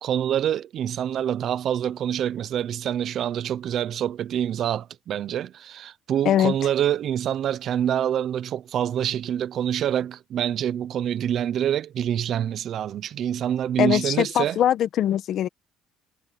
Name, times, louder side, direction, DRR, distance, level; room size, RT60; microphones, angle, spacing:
voice 1, 0.0-14.6, right 10 dB, 50° right, 0.8 m, -26 dB
voice 2, 13.8-15.5, left 11 dB, 55° left, 1.3 m, -22 dB
cardioid pair, 130°, 0 cm